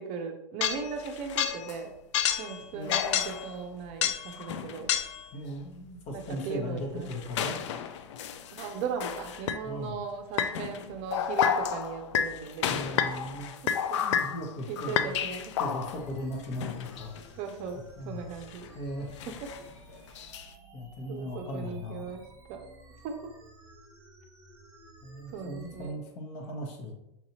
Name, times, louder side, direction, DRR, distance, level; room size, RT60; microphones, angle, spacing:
voice 1, 0.0-1.9 2.4-5.0 6.1-7.1 8.5-14.1 14.7-15.8 17.4-18.7 19.3-19.5 21.1-22.7 23.0-23.3 25.3-26.0, right 6 dB, 45° right, 5 dB, 0.6 m, -38 dB
sound 1, 0.6-1.8 2.1-5.3 6.3-6.5 7.1-9.6 10.4-16.1 16.4-17.3 18.4-18.7 19.2-20.5, left 9 dB, 70° left, 0.4 m, -31 dB
voice 2, 5.3-7.6 9.6-10.0 12.7-13.5 13.9-15.1 15.6-17.2 18.0-18.2 18.7-19.1 20.7-22.2 25.0-26.9, equal, 40° left, 2 dB, 1.0 m, -38 dB
sound 2, 15.9-25.9, right 2 dB, 20° right, 1.2 m, -54 dB
5.6 x 2.6 x 2.9 m, 0.86 s
hypercardioid pair, 115°, 16 cm